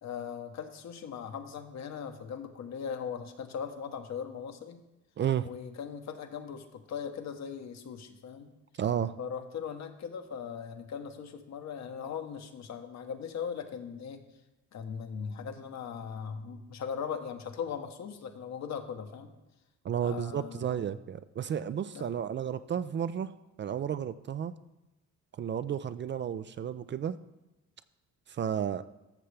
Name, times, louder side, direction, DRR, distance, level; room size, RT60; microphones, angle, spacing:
voice 1, 0.0-4.8 5.4-8.5 9.2-14.2 14.7-19.3 20.0-20.8 21.9-22.1, left 7 dB, 65° left, 6 dB, 1.1 m, -39 dB
voice 2, 5.2-5.5 8.8-9.1 19.8-23.3 23.6-24.5 25.3-27.2 28.3-28.8, right 9 dB, 40° right, 14 dB, 0.4 m, -32 dB
13.5 x 6.7 x 3.4 m, 1.0 s
cardioid pair, 90°, 30 cm